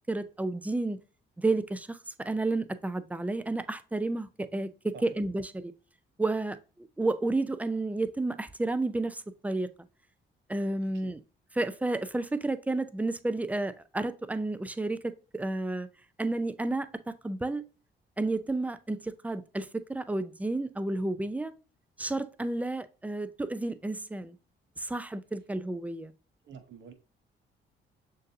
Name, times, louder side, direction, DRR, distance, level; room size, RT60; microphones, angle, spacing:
voice 1, 0.1-1.0 1.4-5.7 6.2-9.7 10.5-11.2 11.5-15.9 16.2-17.6 18.2-21.5 22.0-24.4 24.8-26.1, right 2 dB, 5° right, 0.4 m, -31 dB
voice 2, 26.4-26.9, right 6 dB, 65° right, 0.9 m, -47 dB
6.4 x 2.6 x 2.6 m
cardioid pair, 90°, 20 cm